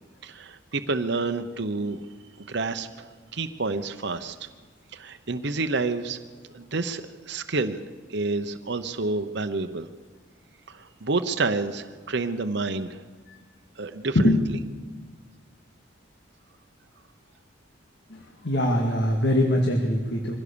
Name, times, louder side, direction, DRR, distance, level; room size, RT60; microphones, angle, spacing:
voice 1, 0.2-2.0 2.4-4.5 4.9-6.2 6.5-7.8 8.1-9.9 10.7-13.0 13.8-14.4, right 3 dB, 60° right, 8 dB, 0.9 m, -29 dB
voice 2, 18.1-20.4, left 1 dB, 60° left, 2 dB, 2.1 m, -23 dB
23.5 x 16.0 x 7.0 m, 1.4 s
head